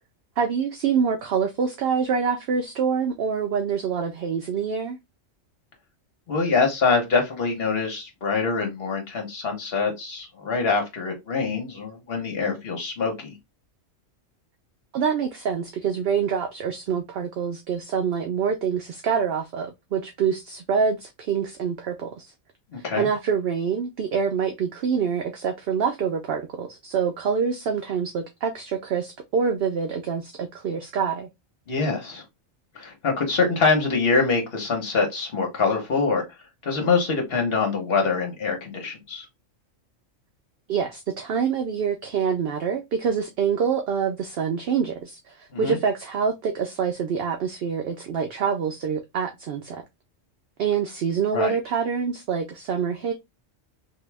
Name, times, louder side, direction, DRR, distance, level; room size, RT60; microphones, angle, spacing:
voice 1, 0.4-5.0 14.9-22.2 23.0-31.3 40.7-49.8 50.6-53.1, right 6 dB, 60° right, 0.7 m, -26 dB
voice 2, 6.3-13.4 22.7-23.1 31.7-32.2 32.7-36.2 36.6-39.3 45.5-45.8 51.3-51.5, left 4 dB, 50° left, 1.3 m, -24 dB
3.0 x 2.7 x 3.3 m
omnidirectional pair, 1.3 m